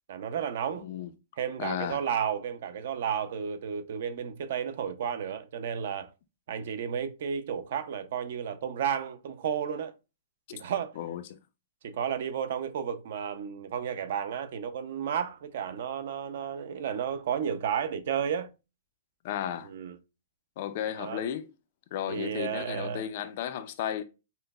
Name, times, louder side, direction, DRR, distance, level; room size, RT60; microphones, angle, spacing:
voice 1, 0.1-0.8 1.4-6.1 6.5-9.9 10.5-10.9 11.8-18.5 19.6-20.0 21.0-21.2 22.1-23.1, right 8 dB, 50° right, 0.4 m, -32 dB
voice 2, 1.6-2.0 10.5-10.6 11.0-11.2 19.2-19.7 20.6-21.5 21.9-24.0, left 10 dB, 35° left, 0.3 m, -34 dB
5.4 x 2.0 x 2.2 m
hypercardioid pair, 175°, 0 cm